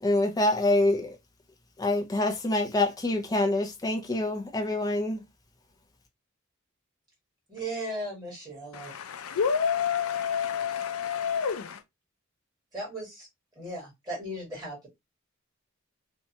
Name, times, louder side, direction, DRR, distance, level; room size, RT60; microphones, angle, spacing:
voice 1, 0.0-1.2 1.8-5.2, left 2 dB, 15° left, 0.4 m, -26 dB
voice 2, 7.5-8.9 12.7-13.3 13.6-14.9, right 1 dB, 20° right, 1.5 m, -36 dB
voice 3, 8.7-11.8, left 7 dB, 90° left, 0.4 m, -28 dB
2.7 x 2.2 x 2.8 m
head